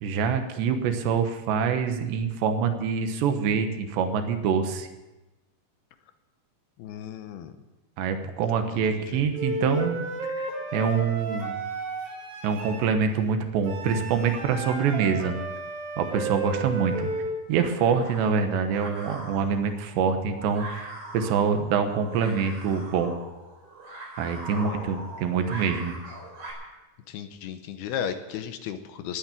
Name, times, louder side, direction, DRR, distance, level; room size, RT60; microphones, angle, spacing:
voice 1, 0.0-4.9 8.0-10.0 10.4-11.5 12.4-15.3 16.0-17.1 17.5-23.2 24.2-26.0, right 6 dB, 90° right, 7 dB, 3.4 m, -25 dB
voice 2, 6.8-7.5 8.7-9.3 24.5-25.0 27.1-29.2, left 8 dB, 75° left, 9 dB, 2.6 m, -35 dB
Wind instrument woodwind instrument, 9.3-12.9 13.6-17.4, right 2 dB, 60° right, 3.9 m, -33 dB
sound 1, 16.6-26.5, right 2 dB, 35° right, 5.0 m, -42 dB
19.0 x 9.2 x 7.3 m, 1.1 s
omnidirectional pair, 4.9 m